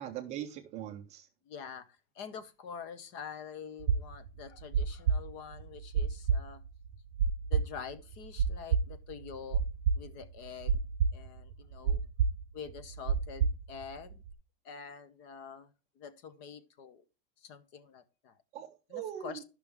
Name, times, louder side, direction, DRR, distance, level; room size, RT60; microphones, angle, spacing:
voice 1, 0.0-1.3 18.5-19.4, right 11 dB, 20° right, 0.5 m, -41 dB
voice 2, 1.5-1.9 2.1-6.6 7.5-9.6 9.9-10.8 11.1-12.0 12.5-14.2 14.6-15.7 16.0-17.0 17.4-18.3 18.9-19.4, left 6 dB, 35° left, 0.7 m, -46 dB
sound 1, 3.8-12.4 12.7-14.3, right 6 dB, 60° right, 0.7 m, -29 dB
11.5 x 6.0 x 3.4 m
supercardioid pair, 180°, 31 cm